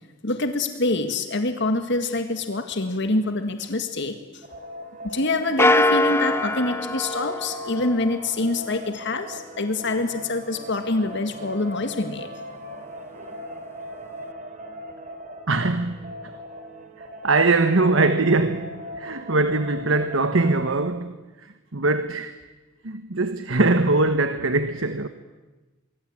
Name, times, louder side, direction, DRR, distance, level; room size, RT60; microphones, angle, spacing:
voice 1, 0.2-4.4 5.0-12.3, left 2 dB, 60° left, 1.8 m, -26 dB
sound 1, 4.4-20.8, equal, 40° right, 4.1 m, -39 dB
sound 2, 5.6-8.3, left 2 dB, 10° left, 0.9 m, -23 dB
voice 2, 15.5-16.3 17.2-22.3 22.8-25.1, right 3 dB, 70° right, 1.3 m, -22 dB
24.5 x 24.5 x 8.8 m
head